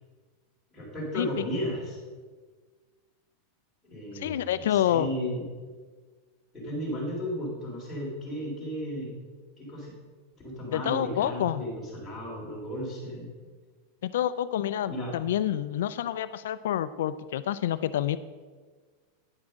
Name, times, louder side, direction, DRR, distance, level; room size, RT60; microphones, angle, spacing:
voice 1, 0.7-2.0 3.8-5.4 6.5-9.1 9.6-9.9 10.4-13.3 14.9-15.1, equal, 5° left, -7 dB, 3.0 m, -34 dB
voice 2, 4.1-5.1 10.7-11.6 14.0-18.2, left 11 dB, 80° left, 13 dB, 0.3 m, -28 dB
9.7 x 6.1 x 6.3 m, 1.4 s
supercardioid pair, 180°, 0 cm